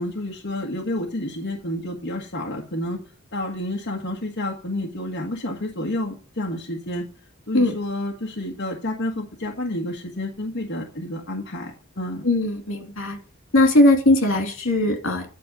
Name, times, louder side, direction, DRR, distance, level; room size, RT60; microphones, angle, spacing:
voice 1, 0.0-3.0 3.3-7.1 7.5-12.2, left 1 dB, 60° left, -1 dB, 1.6 m, -30 dB
voice 2, 12.2-13.2 13.5-15.3, left 1 dB, 85° left, 4 dB, 2.8 m, -19 dB
11.0 x 5.1 x 6.7 m, 0.36 s
head